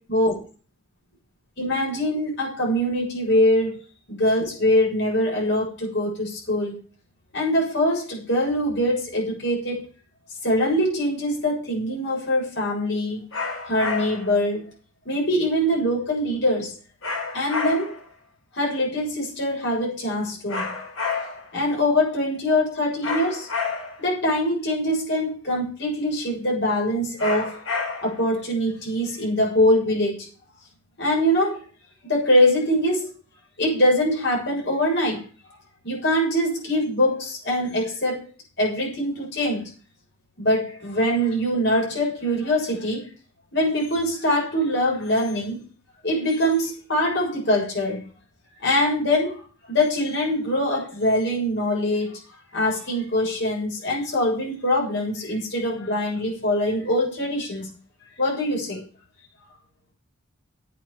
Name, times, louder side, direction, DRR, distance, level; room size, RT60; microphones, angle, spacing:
voice 1, 0.1-0.4 1.6-3.8 4.1-6.8 7.3-9.8 10.4-13.2 13.7-14.7 15.1-16.7 17.3-18.0 18.5-20.7 21.5-23.5 24.0-27.6 28.0-30.3 31.0-31.6 32.0-33.2 33.6-35.3 35.8-38.2 38.6-39.7 40.4-43.1 43.5-45.6 46.0-48.0 48.6-52.2 52.5-57.7 58.2-58.8, left 1 dB, 55° left, 7.1 m, -23 dB
sound 1, 13.3-14.3 17.0-18.1 20.5-21.5 23.0-24.1 27.2-28.3, left 4 dB, 70° left, 4.9 m, -29 dB
9.5 x 8.8 x 7.1 m
head